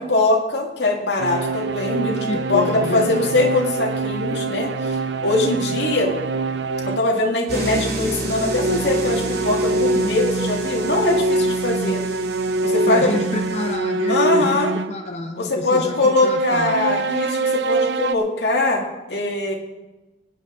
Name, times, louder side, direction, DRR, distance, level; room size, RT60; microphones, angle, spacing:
voice 1, 0.0-6.1 6.8-12.0 12.6-13.1 14.1-14.7 15.4-19.5, left 2 dB, 80° left, 2 dB, 2.0 m, -22 dB
sound 1, 1.2-7.1 8.1-15.1 15.9-18.1, right 3 dB, 90° right, 0.5 m, -24 dB
voice 2, 2.3-3.3 5.0-5.1 12.8-14.6 14.9-16.8, left 2 dB, 40° left, 4 dB, 0.7 m, -29 dB
sound 2, 7.5-13.7, right 2 dB, 60° right, 2.9 m, -31 dB
19.0 x 9.1 x 3.8 m, 1.1 s
head